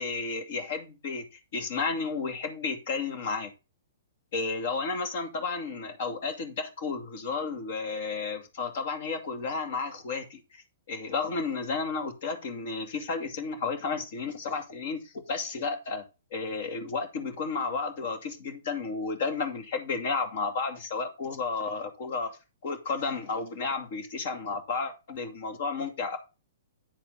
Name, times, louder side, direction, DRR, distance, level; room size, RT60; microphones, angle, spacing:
voice 1, 0.0-3.5 4.3-16.0 16.3-26.2, left 4 dB, 60° left, 2.4 m, -32 dB
10.0 x 4.4 x 5.5 m
hypercardioid pair, 130°, 0 cm